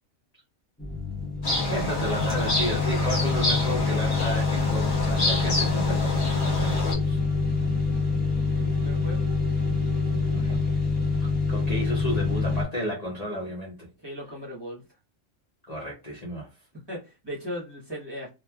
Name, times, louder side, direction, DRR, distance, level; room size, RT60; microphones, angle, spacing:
sound 1, 0.8-12.6, left 4 dB, 10° left, 0.8 m, -26 dB
sound 2, 1.4-6.9, left 2 dB, 60° left, 1.3 m, -28 dB
voice 1, 1.7-7.2 10.3-10.6 11.2-13.9 15.7-16.5, equal, 40° left, 0.7 m, -33 dB
sound 3, 5.7-11.4, right 6 dB, 55° right, 0.6 m, -45 dB
voice 2, 8.5-9.3 14.0-14.8 16.7-18.3, equal, 20° right, 0.9 m, -38 dB
3.1 x 2.4 x 2.2 m
omnidirectional pair, 1.3 m